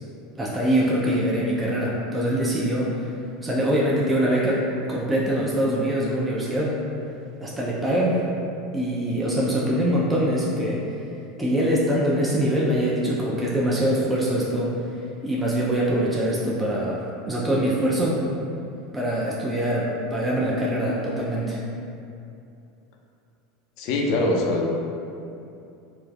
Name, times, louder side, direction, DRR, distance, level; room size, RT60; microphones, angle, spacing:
voice 1, 0.4-3.1 3.4-6.8 7.4-8.2 8.7-10.8 11.4-14.7 15.2-17.0 17.3-18.2 18.9-21.6, equal, 15° right, -6 dB, 0.4 m, -23 dB
voice 2, 23.8-24.7, left 2 dB, 60° left, 0 dB, 0.4 m, -23 dB
3.1 x 2.0 x 2.3 m, 2.6 s
hypercardioid pair, 90°, 0 cm